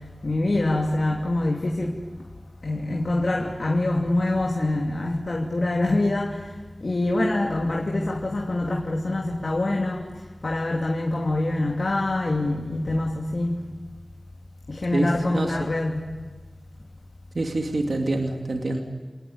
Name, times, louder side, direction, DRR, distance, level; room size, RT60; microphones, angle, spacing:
voice 1, 0.2-2.0 2.6-6.5 6.8-10.0 10.4-13.6 14.7-16.1, left 2 dB, 70° left, 0 dB, 2.9 m, -25 dB
voice 2, 14.9-15.7 17.3-18.8, right 2 dB, 80° right, 2 dB, 2.5 m, -26 dB
29.0 x 19.0 x 9.8 m, 1.3 s
wide cardioid pair, 45°, 0 cm